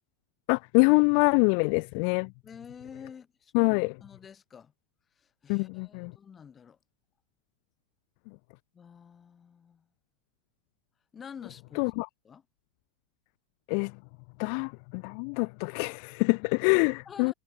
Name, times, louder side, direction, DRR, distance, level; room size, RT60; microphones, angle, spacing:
voice 1, 0.5-2.3 3.5-3.9 5.5-6.1 11.8-12.1 13.7-13.9 14.4-17.3, left 40 dB or more, 45° left, 0.3 m, -25 dB
voice 2, 2.4-3.8 4.0-4.7 5.2-6.8 8.7-9.9 11.1-11.9 12.2-12.5 16.8-17.3, left 7 dB, 20° left, 6.1 m, -48 dB
figure-of-eight pair, 90°, 0 cm